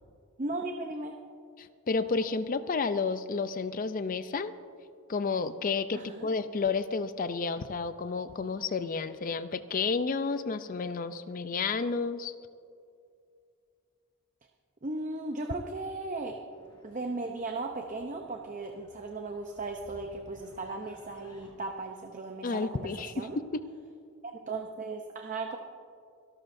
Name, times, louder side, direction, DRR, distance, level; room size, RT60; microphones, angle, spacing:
voice 1, 0.4-1.2 5.9-6.3 14.8-16.4 16.8-23.4 24.4-25.6, right 2 dB, 35° right, 3 dB, 0.7 m, -36 dB
voice 2, 1.6-4.5 5.1-12.3 22.4-23.6, left 4 dB, 40° left, 12 dB, 0.5 m, -31 dB
sound 1, 16.5-21.5, equal, 25° left, 2.1 m, -57 dB
25.5 x 12.0 x 2.6 m, 2.4 s
head